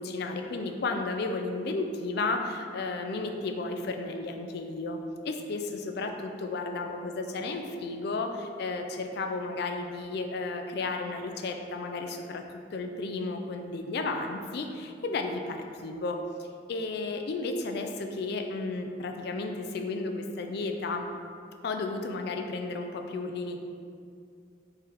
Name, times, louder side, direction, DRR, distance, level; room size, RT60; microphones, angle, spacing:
voice 1, 0.0-12.4 12.7-21.1 21.6-23.6, left 3 dB, 55° left, 5 dB, 0.4 m, -33 dB
4.3 x 3.3 x 3.7 m, 2.4 s
head